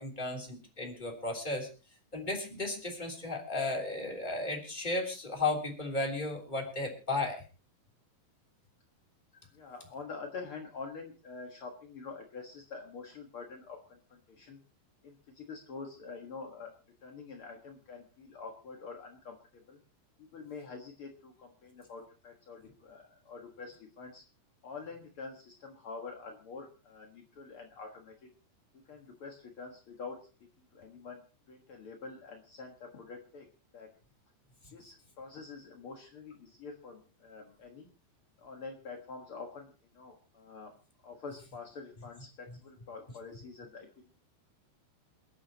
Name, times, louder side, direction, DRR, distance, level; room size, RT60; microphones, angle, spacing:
voice 1, 0.0-1.7 2.1-7.4, left 2 dB, 10° left, 1 dB, 2.9 m, -34 dB
voice 2, 9.5-14.6 15.0-16.7 17.0-19.8 20.3-24.2 24.6-28.3 28.8-30.2 30.7-31.2 31.5-33.5 33.7-33.9 34.7-37.9 38.4-40.7 41.0-43.9, left 4 dB, 65° left, 2 dB, 1.3 m, -46 dB
28.0 x 9.9 x 2.9 m, 0.33 s
omnidirectional pair, 4.9 m